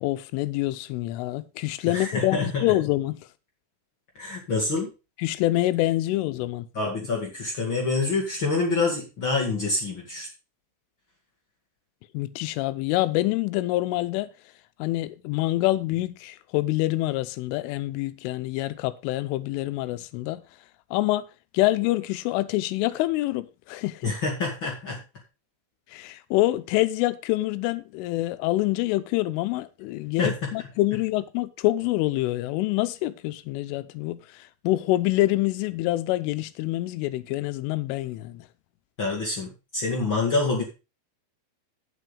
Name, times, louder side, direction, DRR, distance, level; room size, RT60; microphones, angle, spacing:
voice 1, 0.0-3.2 5.2-6.7 12.1-14.3 14.8-20.4 20.9-21.3 21.5-24.1 25.9-38.5, left 17 dB, 85° left, 3.3 m, -26 dB
voice 2, 1.8-2.6 4.2-4.9 6.7-10.3 24.0-25.0 30.2-30.5 39.0-40.6, left 3 dB, 45° left, 1.6 m, -26 dB
9.2 x 7.9 x 5.3 m
omnidirectional pair, 5.6 m